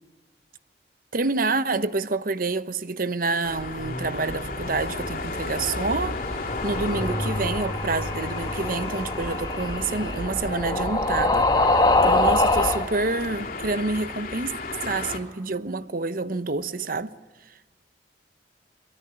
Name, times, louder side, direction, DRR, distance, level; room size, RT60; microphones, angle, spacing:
voice 1, 1.1-14.5 14.8-17.1, right 3 dB, 50° right, 1.0 m, -28 dB
sound 1, 3.4-15.2, left 2 dB, 55° left, 3.4 m, -33 dB
sound 2, 4.3-11.7, right 1 dB, 85° right, 7.1 m, -40 dB
sound 3, 6.1-12.8, left 2 dB, 25° left, 1.7 m, -24 dB
24.5 x 23.0 x 10.0 m
head